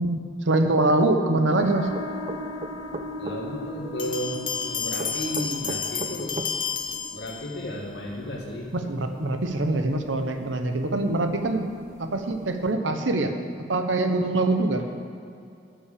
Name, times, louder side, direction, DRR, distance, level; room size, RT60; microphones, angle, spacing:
voice 1, 0.0-1.9 8.7-11.7 12.0-13.4 13.7-14.8, right 2 dB, 90° right, 6 dB, 0.9 m, -24 dB
sound 1, 1.6-12.7, equal, 90° left, 2.1 m, -40 dB
sound 2, 1.9-3.4 5.0-6.5, right 3 dB, 35° right, 0.4 m, -35 dB
voice 2, 3.2-4.4 4.6-6.4 7.1-8.7, equal, 65° left, -2 dB, 2.1 m, -33 dB
Bell, 4.0-7.8, left 6 dB, 25° left, 0.5 m, -31 dB
13.0 x 6.1 x 6.8 m, 2.6 s
head